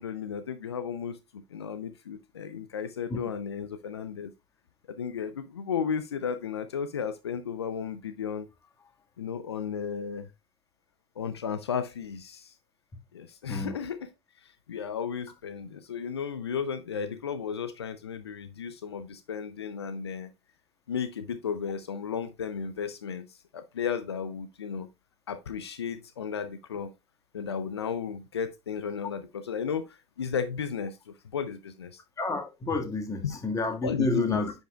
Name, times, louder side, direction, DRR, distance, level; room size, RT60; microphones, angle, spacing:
voice 1, 0.0-4.3 4.9-8.5 9.2-10.3 11.2-12.5 13.1-14.1 14.4-20.3 20.9-24.9 25.3-26.9 27.3-32.0 33.2-33.4 33.8-34.4, left 7 dB, 85° left, 0.5 m, -34 dB
voice 2, 32.2-34.5, left 3 dB, 25° left, 1.6 m, -29 dB
9.8 x 5.3 x 2.3 m
hypercardioid pair, 75°, 13 cm